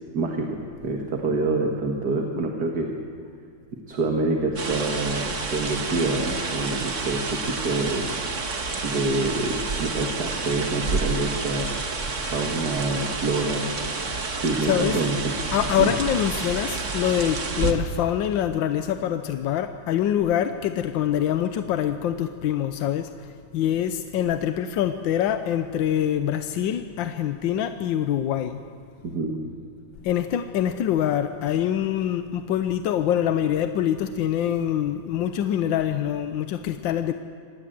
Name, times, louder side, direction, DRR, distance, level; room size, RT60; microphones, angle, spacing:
voice 1, 0.1-2.9 3.9-8.1 8.8-11.7 12.3-13.7 14.4-15.3 15.8-15.9 29.0-29.3, right 3 dB, 60° right, 2 dB, 2.3 m, -26 dB
sound 1, 4.6-17.7, right 4 dB, 40° right, 1.9 m, -29 dB
voice 2, 14.6-15.0 15.5-28.6 30.0-37.1, left 10 dB, 85° left, 9 dB, 1.5 m, -25 dB
26.5 x 19.5 x 7.7 m, 2.3 s
omnidirectional pair, 2.0 m